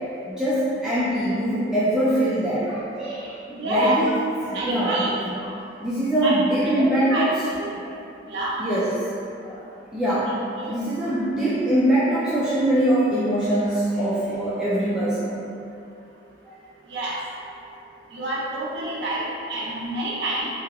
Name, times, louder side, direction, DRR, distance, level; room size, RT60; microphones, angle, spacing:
voice 1, 0.3-3.3 3.7-4.1 4.5-5.2 5.8-7.3 7.7-7.9 8.6-8.9 9.4-9.6 9.9-10.3 10.6-15.3 17.0-17.1, right 1 dB, 5° right, -12 dB, 0.4 m, -23 dB
voice 2, 3.5-4.0 4.5-5.1 6.2-7.2 7.5-7.7 8.3-8.6 10.3-10.7 16.9-17.2 18.1-20.5, right 2 dB, 75° right, -6 dB, 0.6 m, -28 dB
3.3 x 2.8 x 2.3 m, 2.6 s
head